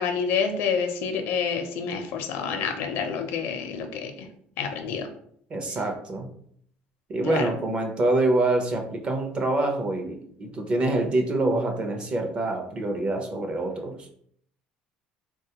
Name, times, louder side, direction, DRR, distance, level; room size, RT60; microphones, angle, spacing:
voice 1, 0.0-4.3 4.6-5.1 7.2-7.5, left 6 dB, 70° left, 6 dB, 0.5 m, -28 dB
voice 2, 5.5-6.3 7.1-14.1, right 2 dB, 30° right, 3 dB, 0.5 m, -26 dB
3.5 x 2.2 x 2.8 m, 0.65 s
cardioid pair, 160°, 4 cm